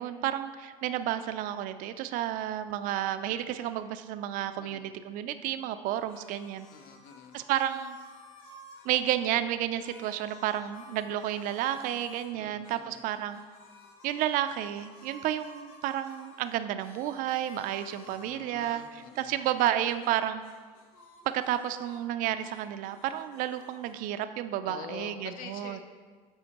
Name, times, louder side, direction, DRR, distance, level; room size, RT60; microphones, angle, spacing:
voice 1, 0.0-6.7 7.3-8.0 8.8-13.4 14.0-20.4 21.2-25.8, right 12 dB, 55° right, 11 dB, 0.4 m, -31 dB
voice 2, 4.6-4.9 6.7-7.4 12.3-13.0 18.1-19.4 24.6-25.8, left 7 dB, 60° left, 7 dB, 0.6 m, -46 dB
sound 1, 5.9-9.3 9.8-12.3 12.6-20.2 20.4-22.1 22.3-23.9, left 1 dB, 80° left, 1.0 m, -54 dB
7.8 x 4.3 x 2.9 m, 1.5 s
supercardioid pair, 115°, 17 cm